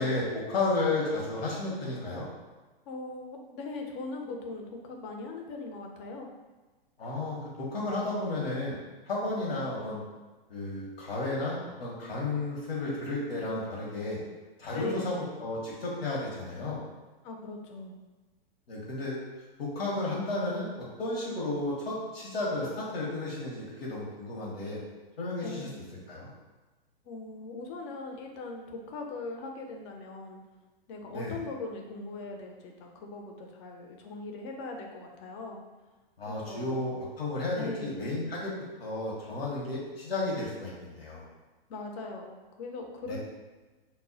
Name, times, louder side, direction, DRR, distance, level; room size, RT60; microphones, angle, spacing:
voice 1, 0.0-2.2 7.0-8.7 9.1-10.0 10.5-14.2 14.6-16.8 18.7-19.2 19.6-20.7 21.0-24.8 25.2-25.7 26.1-26.3 31.1-31.4 36.2-38.5 38.8-41.3 43.1-43.2, left 2 dB, 80° left, -4 dB, 0.8 m, -32 dB
voice 2, 2.9-6.3 14.7-15.2 17.2-18.0 25.4-25.8 27.1-30.4 30.9-35.6 36.3-36.8 37.5-38.1 41.7-43.2, left 3 dB, 30° left, 2 dB, 0.4 m, -40 dB
2.0 x 2.0 x 3.7 m, 1.2 s
hypercardioid pair, 115°, 29 cm